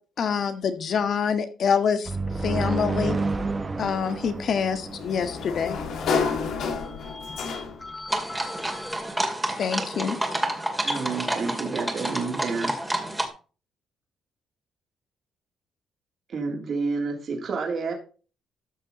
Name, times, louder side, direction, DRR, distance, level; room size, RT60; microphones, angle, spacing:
voice 1, 0.2-2.1 2.4-3.2 3.8-5.8 9.6-10.2, left 6 dB, 60° left, 1.4 m, -25 dB
sound 1, 2.1-5.8, right 3 dB, 30° right, 1.4 m, -30 dB
Sliding door, 4.1-8.0, left 5 dB, 75° left, 1.9 m, -30 dB
voice 2, 6.8-9.1, left 2 dB, 20° left, 0.6 m, -41 dB
sound 2, 8.1-13.3, right 1 dB, 10° right, 2.3 m, -29 dB
voice 3, 10.8-12.8 16.3-17.9, right 4 dB, 55° right, 3.2 m, -29 dB
13.5 x 5.9 x 4.2 m
cardioid pair, 90°, 0 cm